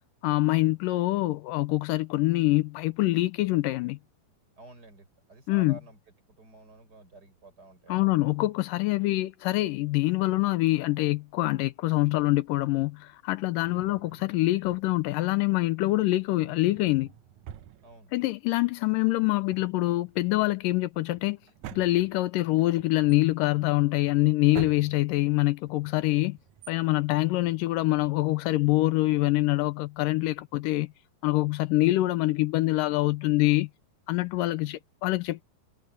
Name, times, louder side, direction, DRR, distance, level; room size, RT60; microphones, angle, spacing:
voice 1, 0.2-4.0 5.5-5.8 7.9-17.1 18.1-21.4 21.7-26.4 26.7-30.9 31.2-33.7 34.1-35.4, left 18 dB, 80° left, 2.1 m, -25 dB
voice 2, 4.6-6.0 6.4-8.1 13.6-14.0 17.8-18.1, right 2 dB, 25° right, 7.1 m, -51 dB
Drawer open or close, 13.6-15.2 16.0-18.5 18.7-18.8 19.3-28.1, right 11 dB, 70° right, 1.8 m, -48 dB
omnidirectional pair, 4.2 m